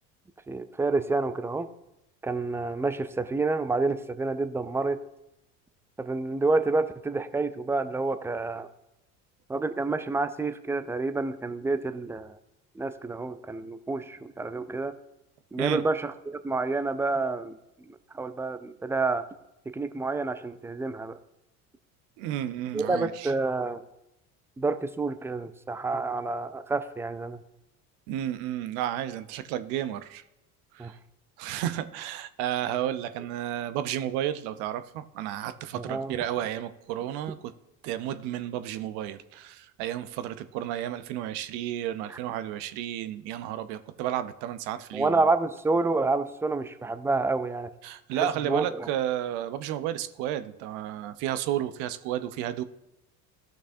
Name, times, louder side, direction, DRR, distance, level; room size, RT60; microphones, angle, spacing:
voice 1, 0.5-1.7 2.2-5.0 6.0-8.7 9.5-12.4 12.8-15.0 15.5-17.6 17.9-19.3 19.7-21.1 22.7-23.8 24.6-27.4 30.8-30.9 35.7-36.3 42.1-42.2 44.9-47.7 48.4-48.9, right 3 dB, 5° right, 11 dB, 0.3 m, -28 dB
voice 2, 22.2-23.3 28.1-30.2 30.7-31.0 31.4-37.5 37.8-45.2 47.8-52.6, right 11 dB, 60° right, 12 dB, 0.7 m, -32 dB
14.5 x 6.1 x 2.7 m, 0.88 s
hypercardioid pair, 70°, 44 cm